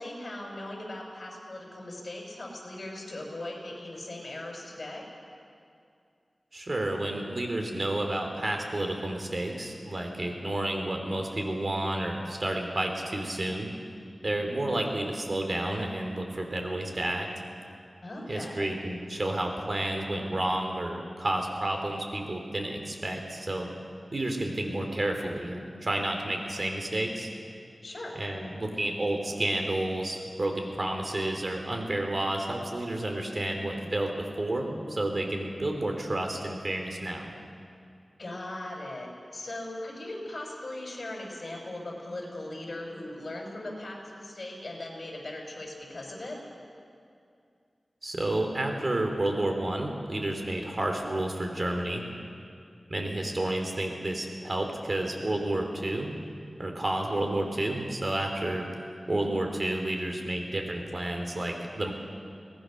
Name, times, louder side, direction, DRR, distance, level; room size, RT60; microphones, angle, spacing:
voice 1, 0.0-5.1 14.3-14.8 18.0-18.7 27.8-28.1 33.4-33.9 38.2-46.4 59.0-59.3, left 1 dB, 50° left, 0 dB, 5.8 m, -39 dB
voice 2, 6.5-13.7 14.2-17.3 18.3-23.7 24.1-27.3 28.2-37.3 48.0-52.0 52.9-56.1 56.6-58.7 59.1-61.9, right 1 dB, 45° right, 3 dB, 3.2 m, -30 dB
23.5 x 19.0 x 6.5 m, 2.3 s
wide cardioid pair, 75°, 0 cm